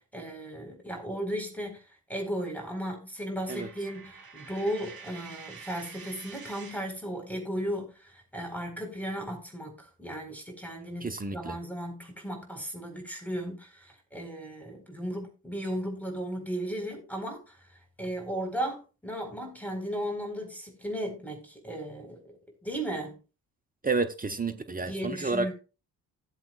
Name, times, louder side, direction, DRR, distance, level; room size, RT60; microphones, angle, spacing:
voice 1, 0.0-1.8 2.1-17.6 18.0-22.2 22.6-23.2 24.9-25.5, equal, 5° left, 4.4 m, -35 dB
Coin (dropping), 3.4-7.0, right 5 dB, 50° right, 2.8 m, -47 dB
voice 2, 11.0-11.6 23.8-25.5, right 3 dB, 20° right, 1.1 m, -30 dB
17.5 x 7.6 x 2.4 m
hypercardioid pair, 45°, 44 cm